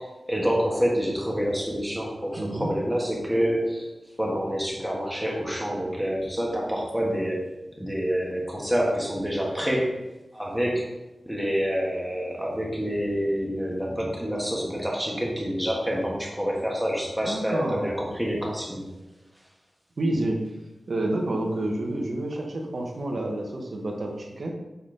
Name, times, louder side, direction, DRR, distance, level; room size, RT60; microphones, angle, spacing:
voice 1, 0.0-3.9 4.2-9.9 10.3-10.8 11.3-18.8, equal, 5° right, -3 dB, 1.4 m, -27 dB
voice 2, 2.4-2.7 17.2-17.8 20.0-20.4 20.9-24.5, right 1 dB, 55° right, 1 dB, 1.2 m, -29 dB
7.0 x 4.2 x 3.9 m, 1.0 s
wide cardioid pair, 115°, 0 cm